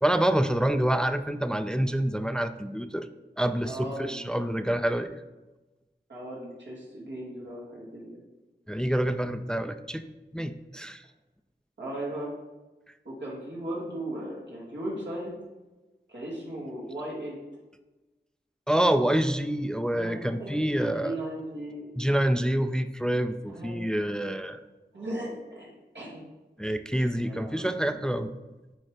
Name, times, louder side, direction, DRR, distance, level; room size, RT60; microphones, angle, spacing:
voice 1, 0.0-3.1 3.4-5.1 8.7-10.0 10.3-11.0 18.7-21.2 22.0-24.6 26.6-28.3, right 1 dB, 5° left, 9 dB, 0.3 m, -27 dB
voice 2, 3.6-4.5 6.1-8.2 11.8-12.3 13.0-15.4 16.1-17.4 19.9-21.9 23.5-23.8 24.3-24.4 24.9-25.7 25.9-26.2 27.2-28.1, right 1 dB, 80° right, -6 dB, 2.0 m, -37 dB
8.8 x 3.7 x 3.3 m, 1.1 s
wide cardioid pair, 45°, 18 cm